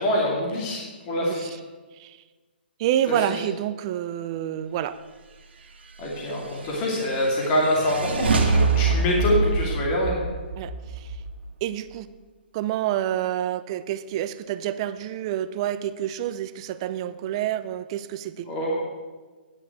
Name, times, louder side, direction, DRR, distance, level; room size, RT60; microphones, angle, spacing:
voice 1, 0.0-1.5 6.0-10.2 18.5-18.8, left 1 dB, 30° left, -2 dB, 2.5 m, -25 dB
voice 2, 2.8-5.0 9.0-9.2 10.6-11.1 11.6-12.1 12.5-18.5, right 11 dB, 30° right, 13 dB, 0.5 m, -28 dB
sound 1, 6.2-11.8, right 3 dB, 75° right, 1.7 m, -25 dB
10.0 x 5.8 x 8.3 m, 1.3 s
hypercardioid pair, 160°, 6 cm